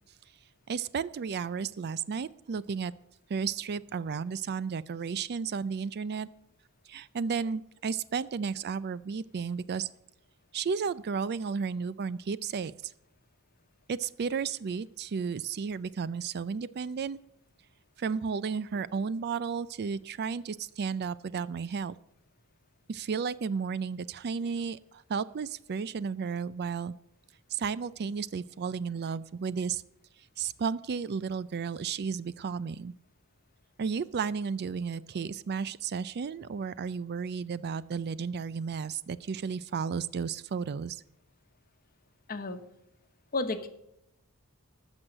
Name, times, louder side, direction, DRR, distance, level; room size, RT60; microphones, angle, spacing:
voice 1, 0.7-2.9 3.3-6.3 6.9-9.9 10.5-12.9 13.9-17.2 18.0-21.9 22.9-26.9 27.5-29.8 30.4-32.9 33.8-41.0, right 6 dB, 50° right, 18 dB, 0.4 m, -33 dB
voice 2, 42.3-42.6 43.3-43.7, left 2 dB, 40° left, 8 dB, 1.1 m, -32 dB
14.5 x 6.3 x 6.6 m, 0.81 s
head